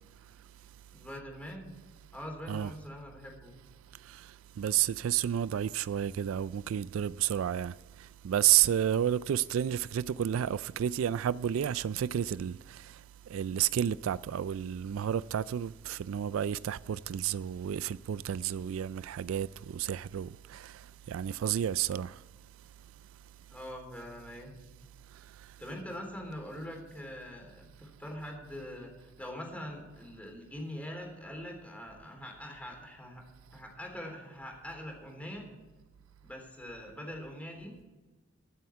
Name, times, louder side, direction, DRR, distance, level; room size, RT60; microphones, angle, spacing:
voice 1, 0.9-1.7 2.1-3.5 23.5-24.6 25.6-33.2 33.5-35.5 36.2-37.7, equal, 5° left, 3.6 m, -43 dB
voice 2, 4.0-22.2 25.4-25.5, right 10 dB, 75° right, 0.3 m, -31 dB
23.0 x 7.9 x 4.6 m
head